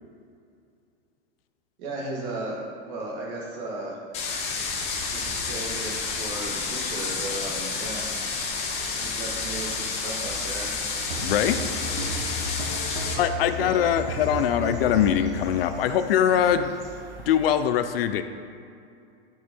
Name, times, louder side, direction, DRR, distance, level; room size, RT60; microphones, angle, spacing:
voice 1, 1.8-2.6 2.9-4.0 5.1-8.1 9.0-10.8, right 2 dB, 40° right, -2 dB, 1.9 m, -35 dB
sound 1, 4.1-13.2, left 4 dB, 20° left, 0.8 m, -30 dB
sound 2, 4.7-17.6, right 2 dB, 10° right, 0.3 m, -44 dB
sound 3, 11.1-15.3, left 1 dB, 65° right, 1.8 m, -33 dB
voice 2, 11.2-11.6 13.1-16.8 17.3-18.2, left 9 dB, 60° left, 9 dB, 0.6 m, -22 dB
9.5 x 5.6 x 4.4 m, 2.4 s
supercardioid pair, 165°, 32 cm